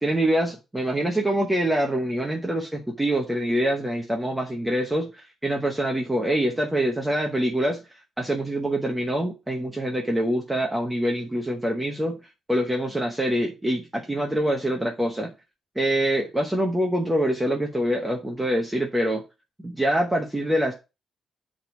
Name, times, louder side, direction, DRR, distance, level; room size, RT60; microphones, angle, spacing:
voice 1, 0.0-12.2 12.5-15.3 15.8-19.2 19.6-20.7, right 1 dB, 5° right, 0.9 m, -25 dB
8.8 x 3.5 x 5.9 m
cardioid pair, 175°, 0 cm